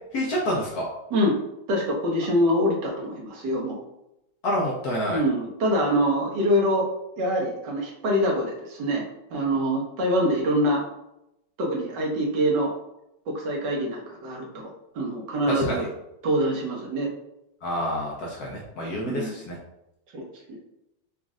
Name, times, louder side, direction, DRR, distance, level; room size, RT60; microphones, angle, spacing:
voice 1, 0.1-0.9 4.4-5.2 15.5-15.9 17.6-19.5, equal, 65° left, -2 dB, 1.0 m, -28 dB
voice 2, 1.7-3.8 5.1-6.9 7.2-9.0 9.3-10.8 11.6-12.7 13.3-14.7 14.9-15.9 16.2-17.1 19.1-19.3 20.1-20.6, equal, 65° right, -1 dB, 1.3 m, -25 dB
4.1 x 2.4 x 3.6 m, 0.86 s
omnidirectional pair, 2.2 m